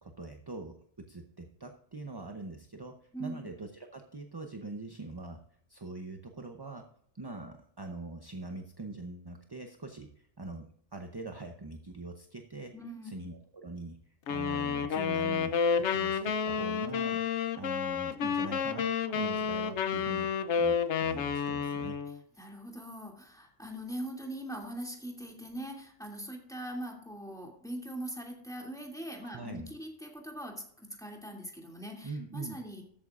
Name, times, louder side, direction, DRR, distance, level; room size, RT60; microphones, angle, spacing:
voice 1, 0.0-5.4 5.7-6.9 7.1-12.8 13.0-17.2 17.5-20.3 20.6-22.0 29.2-29.7 32.0-32.6, right 2 dB, 25° right, 5 dB, 0.6 m, -43 dB
voice 2, 3.1-3.5 12.7-13.2 22.4-32.8, right 1 dB, 5° left, 0 dB, 2.5 m, -41 dB
sound 1, 14.3-22.2, left 6 dB, 65° left, 1.0 m, -30 dB
13.5 x 8.8 x 2.5 m, 0.65 s
omnidirectional pair, 1.3 m